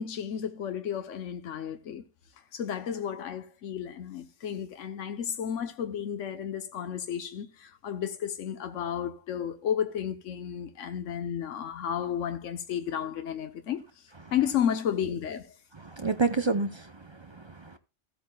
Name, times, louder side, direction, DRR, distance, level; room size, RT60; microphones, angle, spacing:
voice 1, 0.0-2.0 2.5-13.8 14.3-15.5, left 9 dB, 80° left, 1.2 m, -32 dB
voice 2, 15.7-17.8, right 4 dB, 30° right, 0.5 m, -30 dB
14.5 x 8.5 x 2.3 m
omnidirectional pair, 1.3 m